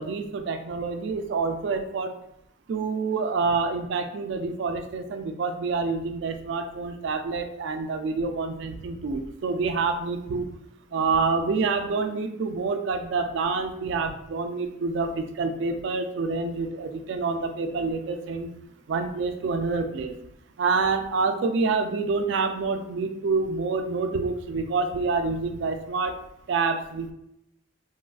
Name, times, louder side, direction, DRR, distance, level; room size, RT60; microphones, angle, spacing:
voice 1, 0.0-2.1 2.7-10.5 10.9-18.5 18.9-20.1 20.6-26.1 26.5-27.1, right 4 dB, 70° right, 7 dB, 0.3 m, -27 dB
3.2 x 2.3 x 2.3 m, 0.80 s
head